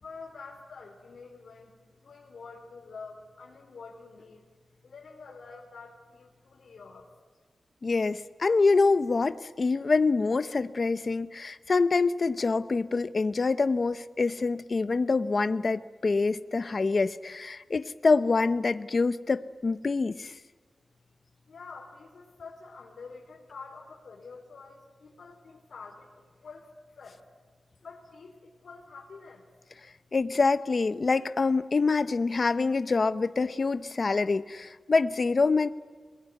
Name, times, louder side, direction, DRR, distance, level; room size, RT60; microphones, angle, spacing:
voice 1, 0.0-4.4 4.8-7.1 21.5-26.1 26.4-26.7 27.0-27.2 27.8-29.4, left 4 dB, 70° left, 0 dB, 3.9 m, -47 dB
voice 2, 7.8-20.3 30.1-35.7, left 4 dB, 40° left, 13 dB, 0.7 m, -26 dB
27.0 x 20.5 x 9.4 m, 1.5 s
wide cardioid pair, 170°, 0 cm